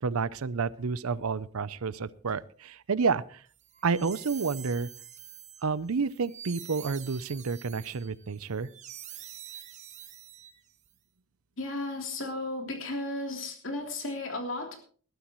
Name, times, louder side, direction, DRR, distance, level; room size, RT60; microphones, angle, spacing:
voice 1, 0.0-3.4 3.8-4.9 5.6-8.7, right 5 dB, 75° right, 18 dB, 0.6 m, -30 dB
sound 1, 3.6-10.9, right 10 dB, 35° right, 0.9 m, -46 dB
voice 2, 11.6-14.8, left 2 dB, 60° left, 3 dB, 3.4 m, -34 dB
20.0 x 13.0 x 3.1 m, 0.43 s
head